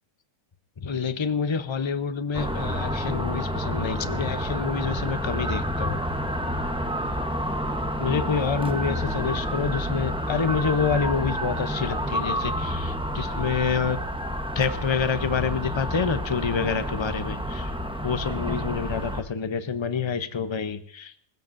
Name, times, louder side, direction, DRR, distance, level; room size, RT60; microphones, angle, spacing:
voice 1, 0.8-6.0 8.0-14.0 14.5-17.7 18.0-21.2, left 5 dB, 25° left, 10 dB, 0.6 m, -27 dB
sound 1, 2.3-19.2, equal, 5° right, 0.8 m, -29 dB
27.0 x 15.0 x 2.6 m, 0.65 s
omnidirectional pair, 1.6 m